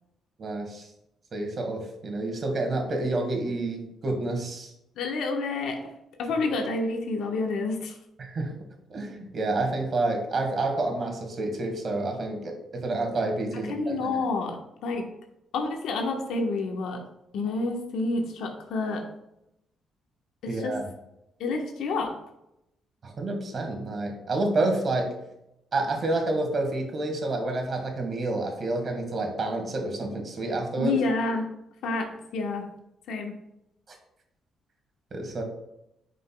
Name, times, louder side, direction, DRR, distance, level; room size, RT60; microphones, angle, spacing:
voice 1, 0.4-0.9 1.3-4.7 8.2-8.5 8.9-14.2 20.5-20.9 23.0-25.1 25.7-31.0 35.1-35.4, right 2 dB, 45° right, 3 dB, 1.8 m, -29 dB
voice 2, 5.0-5.9 6.2-7.9 13.5-15.1 15.5-17.0 17.3-19.1 20.4-20.8 21.4-22.2 30.8-31.5 31.8-32.7 33.1-33.3, left 3 dB, 80° left, 3 dB, 1.2 m, -29 dB
10.0 x 5.1 x 2.3 m, 0.84 s
cardioid pair, 90°, 0 cm